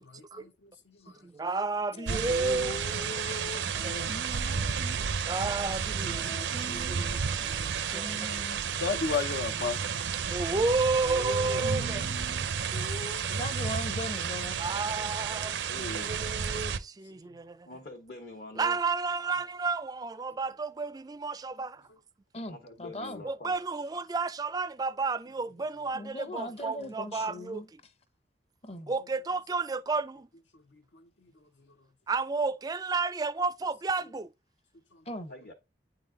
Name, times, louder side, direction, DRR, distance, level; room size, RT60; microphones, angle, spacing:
voice 1, 0.0-1.5 7.8-7.9 8.8-9.8 15.7-16.3 17.1-17.2 30.5-31.1 31.4-31.5 34.9-35.0, left 5 dB, 80° left, 0.8 m, -35 dB
voice 2, 1.2-2.8 3.2-3.3 3.8-4.1 5.3-8.3 10.3-12.0 14.6-17.7 18.6-21.8 23.2-27.6 28.9-30.3 32.1-34.3, right 4 dB, 20° right, 0.3 m, -32 dB
voice 3, 2.0-5.0 6.1-8.7 11.0-14.6 22.3-23.2 25.9-27.7 28.6-28.9 35.1-35.3, left 2 dB, 35° left, 0.7 m, -41 dB
sound 1, 2.0-16.8, right 6 dB, 85° right, 0.6 m, -32 dB
voice 4, 11.1-12.1 12.4-12.5 17.6-18.8 22.5-23.6 35.3-35.5, left 2 dB, 60° left, 1.2 m, -45 dB
9.3 x 3.9 x 3.8 m
head